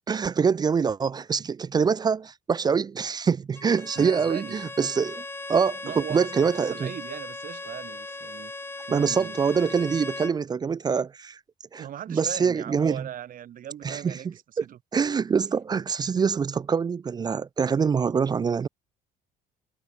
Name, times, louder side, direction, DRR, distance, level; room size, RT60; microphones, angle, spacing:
voice 1, 0.1-5.2 5.5-6.9 8.9-11.4 11.7-13.1 13.8-14.2 14.6-14.7 14.9-18.7, right 6 dB, 25° right, 0.4 m, -25 dB
Bowed string instrument, 3.6-10.4, left 2 dB, 15° left, 2.0 m, -38 dB
voice 2, 4.0-4.6 5.8-8.5 8.8-9.4 11.8-14.8, right 10 dB, 55° right, 1.9 m, -38 dB
cardioid pair, 110°, 17 cm